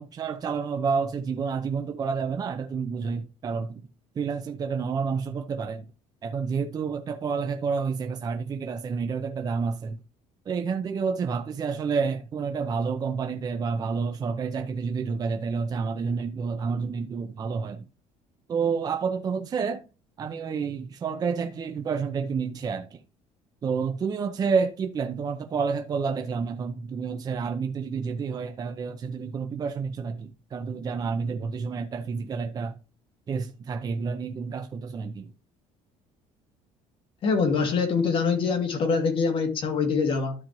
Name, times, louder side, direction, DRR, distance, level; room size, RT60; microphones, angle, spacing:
voice 1, 0.0-3.8 4.2-5.9 6.2-10.0 10.5-17.8 18.5-19.8 20.2-23.0 23.6-32.7 33.3-35.3, right 5 dB, 30° right, 0.6 m, -29 dB
voice 2, 37.2-40.3, left 5 dB, 45° left, 2.1 m, -24 dB
13.0 x 4.3 x 3.1 m
cardioid pair, 145°, 13 cm